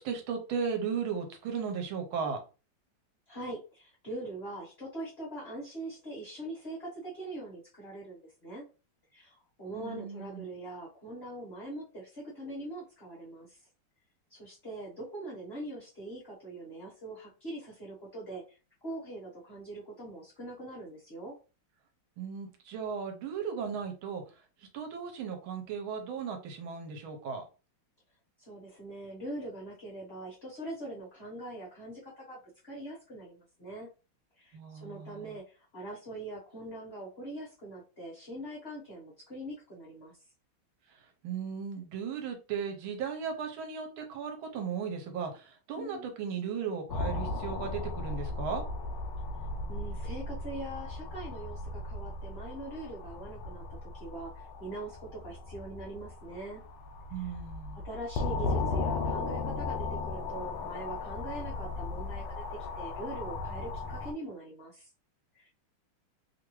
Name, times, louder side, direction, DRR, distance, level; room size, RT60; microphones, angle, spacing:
voice 1, 0.0-2.4 9.7-10.4 22.2-24.2 24.7-27.4 34.5-35.3 41.2-48.6 57.1-57.8, right 6 dB, 80° right, 4 dB, 1.6 m, -36 dB
voice 2, 3.3-8.6 9.1-13.6 14.3-18.4 18.8-21.3 28.4-33.9 34.4-40.1 45.8-46.1 49.7-53.6 53.9-56.6 57.2-57.3 57.7-64.9 65.3-65.5, right 1 dB, 40° left, -6 dB, 1.0 m, -42 dB
sound 1, 46.9-64.1, left 3 dB, 80° left, 1.3 m, -36 dB
3.3 x 2.5 x 3.0 m, 0.33 s
omnidirectional pair, 2.3 m